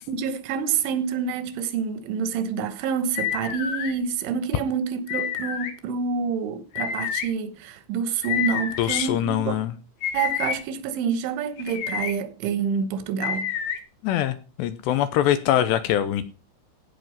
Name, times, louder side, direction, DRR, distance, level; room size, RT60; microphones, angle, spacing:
voice 1, 0.1-9.6 10.1-13.5, right 6 dB, 80° right, 3.5 m, -27 dB
sound 1, 3.1-3.9 5.1-5.7 6.7-7.3 8.2-9.0 10.0-10.6 11.6-12.1 13.2-13.8, left 8 dB, 65° left, 2.8 m, -28 dB
voice 2, 8.8-9.7 14.0-16.3, left 11 dB, 80° left, 2.7 m, -23 dB
16.0 x 5.5 x 5.4 m
omnidirectional pair, 5.4 m